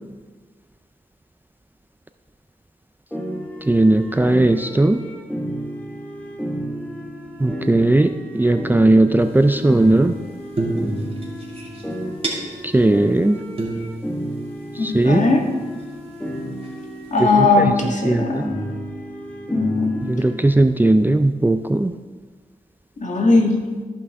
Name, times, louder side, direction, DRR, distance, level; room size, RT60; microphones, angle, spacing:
sound 1, 3.1-20.5, equal, 10° left, 1.6 m, -31 dB
voice 1, 3.7-5.0 7.4-10.1 12.6-13.4 14.8-15.3 17.2-17.7 18.0-18.4 20.1-21.9, right 2 dB, 15° right, 9 dB, 0.4 m, -17 dB
sound 2, 9.2-10.1 10.5-12.8 13.2-13.3 13.6-15.1 15.8-15.9 16.6-17.1, right 2 dB, 40° right, 2.3 m, -30 dB
voice 2, 14.8-15.5 17.1-18.5 19.5-20.1 23.0-23.7, left 3 dB, 55° left, 1 dB, 1.6 m, -19 dB
13.5 x 5.7 x 3.6 m, 1.4 s
cardioid pair, 70°, 15 cm